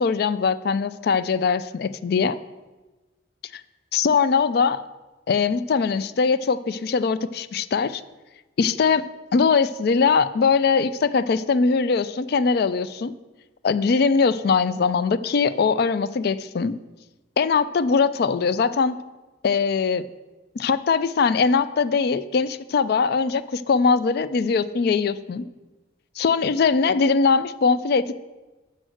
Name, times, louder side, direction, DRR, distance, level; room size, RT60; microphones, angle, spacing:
voice 1, 0.0-2.4 3.5-3.6 3.9-4.8 5.3-8.0 8.6-9.1 9.3-13.1 13.6-16.7 17.4-19.0 19.4-20.1 20.6-25.5 26.2-28.1, left 5 dB, 55° left, 15 dB, 0.3 m, -21 dB
7.8 x 5.4 x 6.3 m, 1.2 s
head